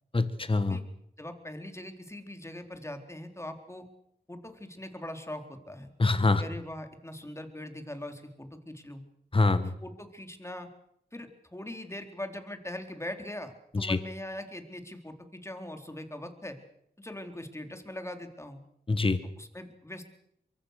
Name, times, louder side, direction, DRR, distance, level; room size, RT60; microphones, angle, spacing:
voice 1, 0.1-0.8 6.0-6.4 9.3-9.7 13.7-14.0 18.9-19.2, left 3 dB, 30° left, 12 dB, 1.5 m, -24 dB
voice 2, 1.2-3.8 4.3-5.9 6.4-9.0 9.6-10.7 11.1-16.6 17.0-18.6 19.4-20.1, left 1 dB, 15° left, 6 dB, 3.9 m, -41 dB
24.0 x 23.0 x 6.7 m, 0.77 s
cardioid pair, 50°, 17 cm